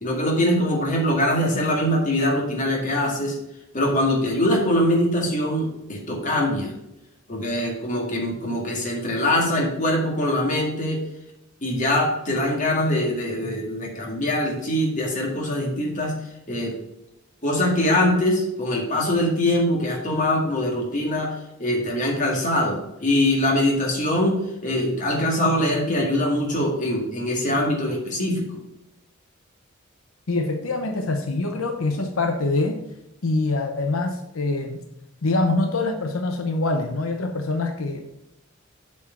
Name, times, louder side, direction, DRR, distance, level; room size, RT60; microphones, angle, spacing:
voice 1, 0.0-3.4 3.7-6.7 7.3-11.0 11.6-16.2 16.5-16.8 17.4-21.3 21.6-28.5, left 1 dB, 40° left, 0 dB, 2.0 m, -23 dB
voice 2, 30.3-32.8 33.2-34.8 35.2-38.0, left 2 dB, 85° left, 4 dB, 0.8 m, -24 dB
7.1 x 4.6 x 5.8 m, 0.87 s
head